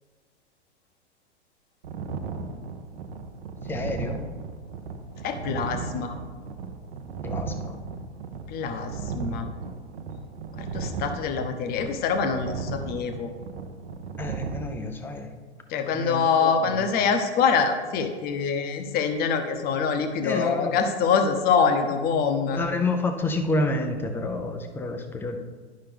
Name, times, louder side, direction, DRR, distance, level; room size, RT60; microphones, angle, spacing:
sound 1, 1.8-14.6, right 4 dB, 65° right, 0.9 m, -35 dB
voice 1, 3.7-4.2 7.2-7.8 14.2-15.3 15.9-17.0 20.2-20.8 22.5-25.4, left 2 dB, 5° left, 5 dB, 0.4 m, -29 dB
voice 2, 5.2-6.2 8.5-9.4 10.6-13.3 15.7-22.6, left 6 dB, 25° left, 6 dB, 0.9 m, -25 dB
11.5 x 5.6 x 3.4 m, 1.5 s
figure-of-eight pair, 105°, 34 cm